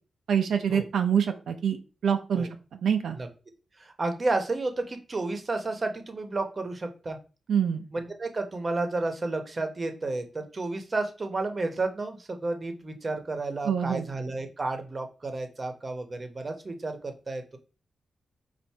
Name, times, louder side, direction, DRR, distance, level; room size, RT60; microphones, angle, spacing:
voice 1, 0.3-3.2 7.5-7.8 13.6-14.1, right 8 dB, 85° right, 5 dB, 0.5 m, -26 dB
voice 2, 3.8-7.2 7.9-17.6, right 3 dB, 35° right, 6 dB, 0.9 m, -31 dB
4.3 x 2.5 x 4.5 m, 0.34 s
cardioid pair, 80°, 0 cm